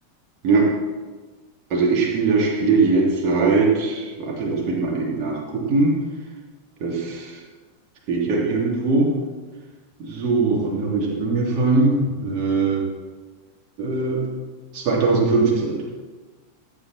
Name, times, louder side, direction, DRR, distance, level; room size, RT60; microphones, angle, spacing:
voice 1, 1.7-6.0 6.8-7.3 8.1-9.1 10.0-12.8 13.8-14.2 14.7-15.8, right 3 dB, 40° right, -2 dB, 3.1 m, -21 dB
13.5 x 8.5 x 4.3 m, 1.3 s
figure-of-eight pair, 90°, 0 cm